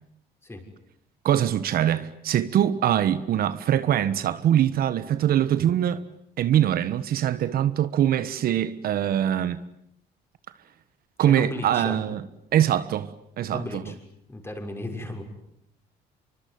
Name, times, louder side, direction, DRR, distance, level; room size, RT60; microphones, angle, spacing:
voice 1, 1.2-6.0 6.4-9.6 11.2-12.2 12.5-13.1 13.4-13.8, right 10 dB, 60° right, 1.4 m, -23 dB
voice 2, 11.2-12.0 13.5-13.9 14.3-15.2, left 1 dB, 15° left, 6.5 m, -34 dB
25.5 x 24.5 x 9.6 m
cardioid pair, 110°, 17 cm